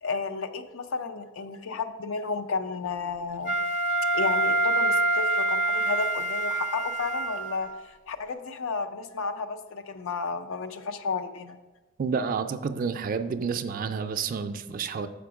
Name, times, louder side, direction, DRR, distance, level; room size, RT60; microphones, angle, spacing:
voice 1, 0.0-3.6 4.1-11.6, left 4 dB, 90° left, 9 dB, 0.5 m, -32 dB
Wind instrument woodwind instrument, 3.4-7.7, right 2 dB, 40° left, 0.6 m, -26 dB
voice 2, 12.0-15.1, right 5 dB, 45° right, 10 dB, 0.3 m, -29 dB
6.7 x 5.1 x 4.8 m, 1.2 s
head